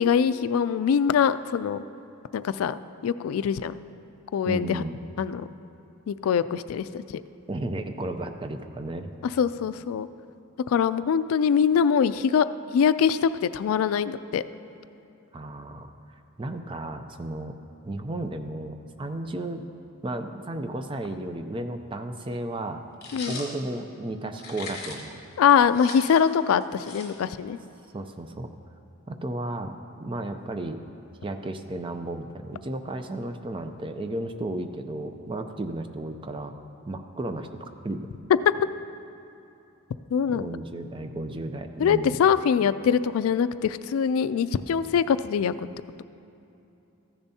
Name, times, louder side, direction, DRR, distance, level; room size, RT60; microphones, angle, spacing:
voice 1, 0.0-1.8 2.3-3.7 4.3-4.8 5.2-5.5 6.1-7.2 9.2-10.1 10.7-12.5 12.7-14.4 23.1-23.4 25.4-27.6 40.1-40.5 41.8-45.7, left 7 dB, 75° left, 14 dB, 0.3 m, -23 dB
voice 2, 4.5-5.0 7.5-9.1 15.3-15.9 16.4-17.5 17.8-19.6 20.0-22.8 23.3-25.2 27.9-28.5 29.1-29.7 30.0-30.8 31.2-36.5 36.9-38.1 40.3-42.2, right 2 dB, 25° right, 7 dB, 0.5 m, -33 dB
sound 1, 23.0-23.5 24.4-25.1 25.5-27.5, left 3 dB, 45° left, 1.6 m, -39 dB
14.5 x 10.5 x 2.8 m, 2.9 s
head